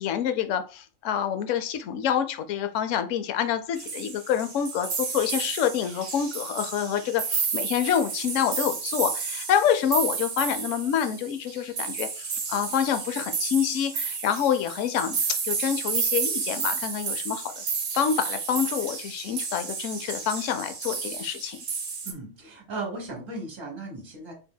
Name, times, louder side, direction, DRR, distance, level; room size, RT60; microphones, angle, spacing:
voice 1, 0.0-15.2 15.4-17.6 17.9-21.6, left 9 dB, 75° left, 9 dB, 0.9 m, -27 dB
sound 1, 3.8-22.1, right 5 dB, 65° right, 1.2 m, -31 dB
voice 2, 22.0-24.3, right 2 dB, 20° right, 1 dB, 1.2 m, -36 dB
4.8 x 3.7 x 2.2 m, 0.35 s
omnidirectional pair, 1.4 m